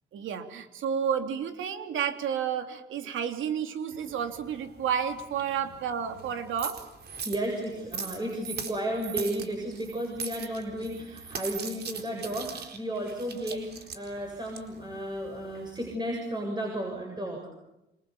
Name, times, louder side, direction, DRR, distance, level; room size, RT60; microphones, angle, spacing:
voice 1, 0.1-6.8, right 8 dB, 80° right, 7 dB, 3.1 m, -31 dB
sound 1, 3.9-15.9, right 6 dB, 55° right, 4.3 m, -41 dB
voice 2, 7.2-17.5, right 1 dB, 20° right, 1 dB, 7.7 m, -33 dB
27.5 x 27.5 x 7.1 m, 0.92 s
cardioid pair, 90°, 20 cm